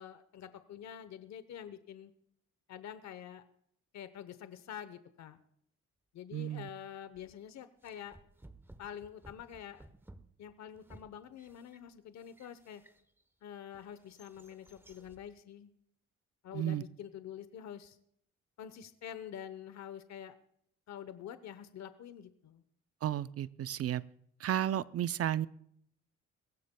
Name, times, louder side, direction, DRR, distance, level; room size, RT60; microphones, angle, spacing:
voice 1, 0.0-2.1 2.7-3.4 3.9-5.4 6.1-8.2 8.8-9.9 10.4-12.8 13.4-15.7 16.4-18.0 18.6-20.3 20.9-22.6, left 9 dB, 65° left, 12 dB, 1.0 m, -47 dB
voice 2, 6.3-6.7 16.5-16.8 23.0-24.0 24.4-25.5, right 11 dB, 50° right, 15 dB, 0.6 m, -33 dB
sound 1, 7.1-7.4 7.8-13.3 13.7-15.3, right 1 dB, 5° right, 1.0 m, -58 dB
22.0 x 16.5 x 2.3 m, 0.69 s
cardioid pair, 90°, 30 cm